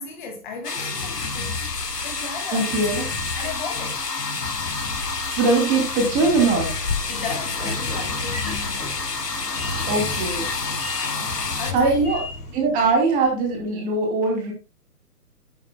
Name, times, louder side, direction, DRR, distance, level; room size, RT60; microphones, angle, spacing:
voice 1, 0.0-1.7 2.0-3.1 3.4-4.3 7.1-9.0 11.1-12.2 12.5-12.6, left 5 dB, 30° left, 2.1 m, -36 dB
sound 1, 0.6-11.7, left 4 dB, 80° left, 1.7 m, -29 dB
sound 2, 0.7-13.5, left 3 dB, 55° left, 4.4 m, -36 dB
voice 2, 2.5-3.1 5.3-6.8 9.9-10.5 11.7-12.2 12.5-14.5, right 3 dB, 15° right, 2.7 m, -21 dB
Train / Sliding door, 6.2-12.7, left 1 dB, 15° left, 4.9 m, -37 dB
10.5 x 8.8 x 2.2 m
figure-of-eight pair, 135°, 48 cm